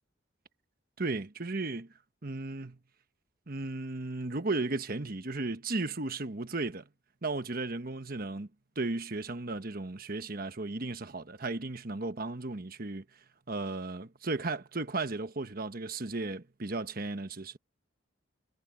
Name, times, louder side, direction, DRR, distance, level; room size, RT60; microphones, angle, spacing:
voice 1, 1.0-1.9 2.2-2.8 3.5-6.9 7.2-8.5 8.8-13.0 13.5-17.6, right 3 dB, 50° right, 1.2 m, -35 dB
head